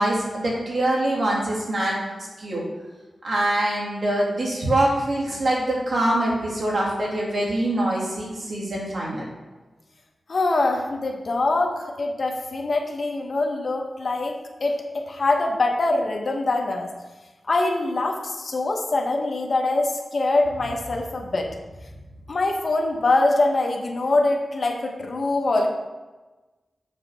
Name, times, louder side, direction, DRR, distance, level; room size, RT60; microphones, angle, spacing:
voice 1, 0.0-1.9 2.4-2.6 3.2-9.3, right 1 dB, 60° right, -4 dB, 2.5 m, -24 dB
voice 2, 10.3-14.8 15.1-16.9 17.5-21.5 22.3-25.7, left 2 dB, 55° left, 2 dB, 1.1 m, -23 dB
7.4 x 4.0 x 6.0 m, 1.2 s
wide cardioid pair, 95°, 0 cm